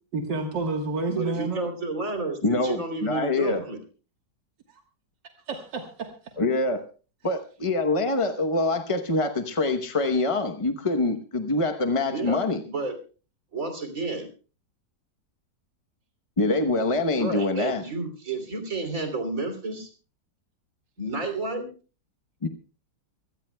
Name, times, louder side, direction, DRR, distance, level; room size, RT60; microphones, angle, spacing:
voice 1, 0.1-1.7 4.7-4.8 5.5-6.1, right 3 dB, 80° right, 3 dB, 2.1 m, -30 dB
voice 2, 1.1-3.8 12.1-12.4 12.7-13.0 13.5-14.3 17.2-19.9 21.0-21.7, right 3 dB, 50° right, 6 dB, 3.4 m, -31 dB
voice 3, 2.4-3.6 6.4-6.8 7.2-12.6 16.4-17.8 22.4-22.5, left 2 dB, 30° left, 7 dB, 0.6 m, -25 dB
24.5 x 17.0 x 2.3 m, 0.36 s
omnidirectional pair, 1.9 m